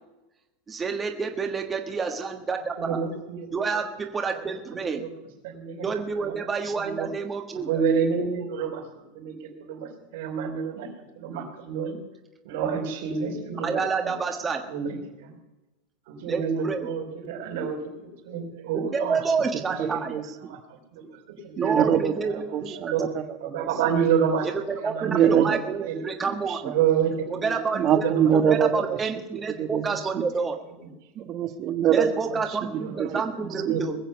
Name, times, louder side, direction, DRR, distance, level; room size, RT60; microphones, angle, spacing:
voice 1, 0.7-3.0 3.5-5.0 5.8-7.7 13.6-14.6 16.3-16.9 18.7-20.1 21.6-22.3 22.6-22.8 24.7-26.7 27.3-28.0 28.5-30.6 31.9-34.0, right 5 dB, 20° right, 4 dB, 1.5 m, -29 dB
voice 2, 2.8-3.7 4.3-4.5 4.9-5.1 5.4-5.9 6.2-6.5 6.8-7.1 7.6-8.8 9.1-10.9 11.2-12.0 12.4-14.1 14.6-15.3 16.1-19.2 19.7-19.9 20.2-20.6 20.9-21.8 22.7-23.0 23.4-24.5 24.8-25.5 25.9-26.1 26.6-27.6 28.0-28.3 32.6-33.1 33.4-33.9, right 7 dB, 70° right, 2 dB, 4.9 m, -29 dB
voice 3, 19.8-20.6 21.6-24.0 25.0-25.9 26.2-26.7 27.7-29.1 29.6-30.3 31.1-33.2 33.6-33.8, right 8 dB, 40° right, 8 dB, 1.4 m, -25 dB
21.0 x 7.4 x 7.0 m, 1.0 s
supercardioid pair, 125°, 0 cm